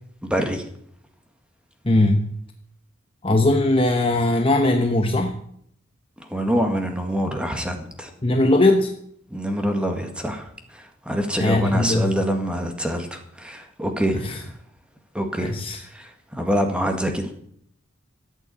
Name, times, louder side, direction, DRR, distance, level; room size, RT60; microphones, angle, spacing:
voice 1, 0.2-0.6 6.3-8.1 9.3-10.4 10.7-14.2 15.1-15.5 15.9-17.3, equal, 5° right, 4 dB, 1.8 m, -25 dB
voice 2, 1.8-2.3 3.2-5.4 8.2-8.9 11.4-12.1 14.2-14.4 15.4-15.8, left 2 dB, 25° left, 4 dB, 1.0 m, -19 dB
13.5 x 8.5 x 8.3 m, 0.69 s
head